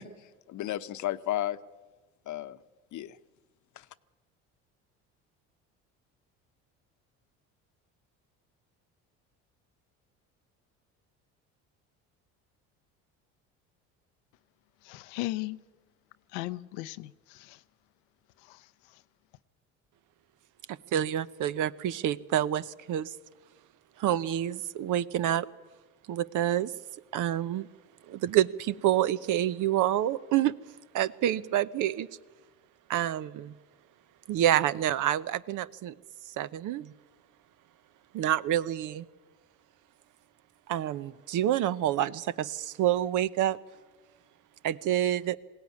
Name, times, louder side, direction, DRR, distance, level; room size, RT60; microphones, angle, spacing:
voice 1, 0.0-1.6 2.3-2.6 2.9-3.2 3.8-3.9, left 13 dB, 55° left, 0.9 m, -34 dB
voice 2, 14.8-15.6 16.3-17.6 18.4-19.0, left 18 dB, 85° left, 0.7 m, -37 dB
voice 3, 20.9-23.1 24.0-25.4 26.1-26.7 27.1-27.7 28.1-30.5 30.9-32.1 32.9-33.5 34.3-35.9 36.4-36.9 38.1-39.1 40.7-43.6 44.6-45.4, right 12 dB, 60° right, 0.8 m, -27 dB
21.0 x 16.5 x 9.5 m
supercardioid pair, 75°, 35 cm